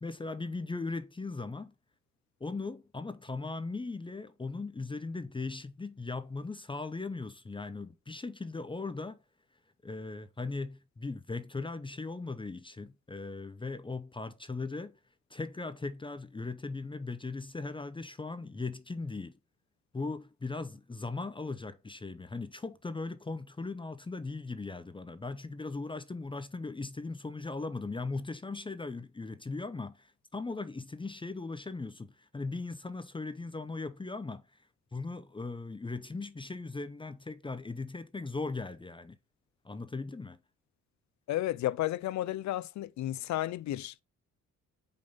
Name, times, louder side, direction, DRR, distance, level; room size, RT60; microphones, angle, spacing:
voice 1, 0.0-1.7 2.4-9.2 9.8-15.0 15.3-19.3 19.9-34.4 34.9-39.2 39.6-40.4, left 3 dB, 15° left, 0.7 m, -38 dB
voice 2, 41.3-44.0, left 14 dB, 65° left, 0.6 m, -32 dB
5.4 x 5.4 x 5.5 m
cardioid pair, 90°, 30 cm